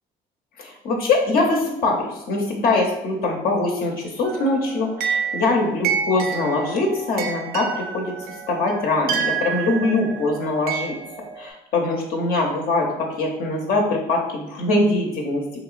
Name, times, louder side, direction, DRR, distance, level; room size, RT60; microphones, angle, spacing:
voice 1, 0.6-8.1 8.5-11.0 11.4-15.4, left 2 dB, 60° left, -1 dB, 0.7 m, -22 dB
sound 1, 4.2-11.5, right 7 dB, 65° right, 0.4 m, -29 dB
3.3 x 2.9 x 2.4 m, 0.93 s
cardioid pair, 110°, 17 cm